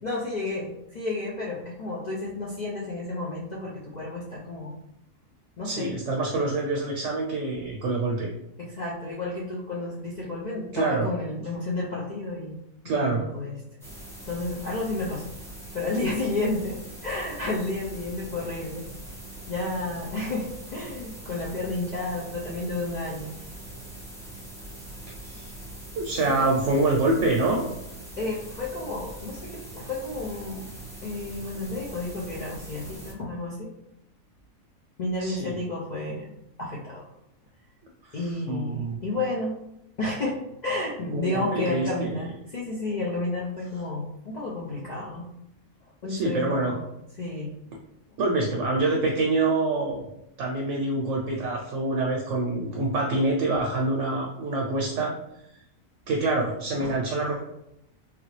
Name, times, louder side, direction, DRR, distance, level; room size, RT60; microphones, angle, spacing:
voice 1, 0.0-4.8 5.6-5.9 8.6-12.6 12.8-13.6 14.2-15.3 15.7-18.9 19.5-23.3 26.2-26.3 28.2-30.7 31.0-33.7 35.0-36.3 36.6-37.0 38.1-39.6 40.0-45.3 46.0-46.8 47.2-47.5 56.8-57.0, left 2 dB, 80° left, -4 dB, 0.4 m, -31 dB
voice 2, 5.6-8.3 10.7-11.1 12.8-13.3 25.2-25.5 26.0-27.7 35.2-35.5 38.1-39.0 41.1-42.1 46.1-46.8 48.2-50.0 50.4-55.1 56.1-57.4, right 2 dB, 70° right, -1 dB, 0.9 m, -26 dB
sound 1, 13.8-33.1, right 1 dB, 5° left, 0.6 m, -42 dB
3.3 x 2.4 x 3.1 m, 0.81 s
omnidirectional pair, 1.5 m